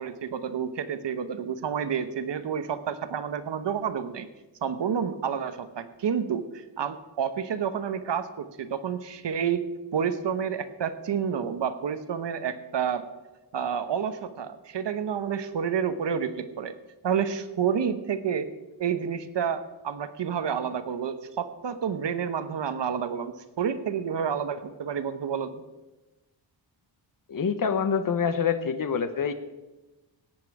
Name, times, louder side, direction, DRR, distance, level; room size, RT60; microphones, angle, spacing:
voice 1, 0.0-4.3 4.6-9.6 9.9-13.0 13.5-16.7 17.0-18.5 18.8-25.6, right 7 dB, 65° right, 11 dB, 1.0 m, -29 dB
voice 2, 27.3-29.3, left 6 dB, 45° left, 10 dB, 1.0 m, -26 dB
17.5 x 8.9 x 4.8 m, 1.1 s
wide cardioid pair, 165°, 46 cm